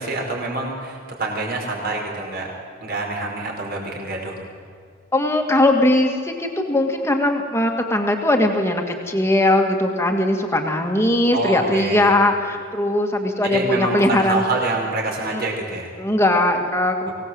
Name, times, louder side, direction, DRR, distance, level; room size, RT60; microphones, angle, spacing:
voice 1, 0.0-2.5 2.8-4.4 11.3-12.1 13.4-15.9 17.1-17.2, right 2 dB, 45° right, 0 dB, 4.9 m, -26 dB
voice 2, 5.1-14.4 15.3-15.4 16.0-17.1, left 1 dB, 15° left, 3 dB, 2.2 m, -19 dB
24.0 x 18.0 x 7.8 m, 2.1 s
head